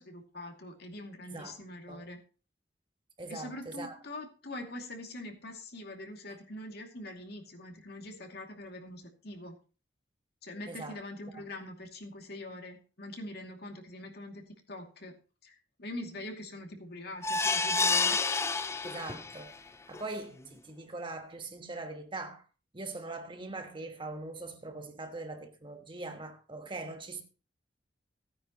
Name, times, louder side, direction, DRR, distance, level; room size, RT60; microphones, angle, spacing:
voice 1, 0.0-2.2 3.3-9.6 10.4-15.2 15.4-18.3, left 1 dB, 60° left, 2.5 m, -44 dB
voice 2, 3.2-4.0 10.7-11.0 11.4-11.5 18.8-19.5 19.9-22.4 22.7-27.2, right 2 dB, 30° right, 1.3 m, -41 dB
sound 1, 17.2-19.5 19.9-20.0 20.4-20.5, left 4 dB, 15° left, 0.5 m, -29 dB
16.0 x 9.6 x 3.0 m
head